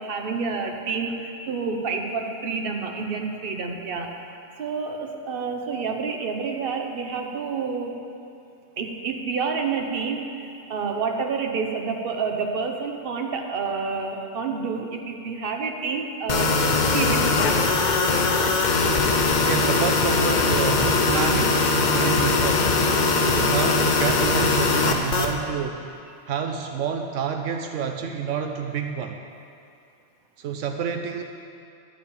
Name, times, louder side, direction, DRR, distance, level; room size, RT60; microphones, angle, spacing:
voice 1, 0.0-4.1 4.6-8.0 8.8-16.6 16.9-17.4 19.0-19.1 23.2-23.3, right 5 dB, 50° right, 2 dB, 1.1 m, -29 dB
sound 1, 16.3-25.3, left 3 dB, 45° left, 0.8 m, -21 dB
voice 2, 19.4-22.9 23.3-25.9 26.3-29.2 30.4-31.2, right 7 dB, 80° right, 5 dB, 1.0 m, -29 dB
12.0 x 5.0 x 8.5 m, 2.6 s
omnidirectional pair, 1.3 m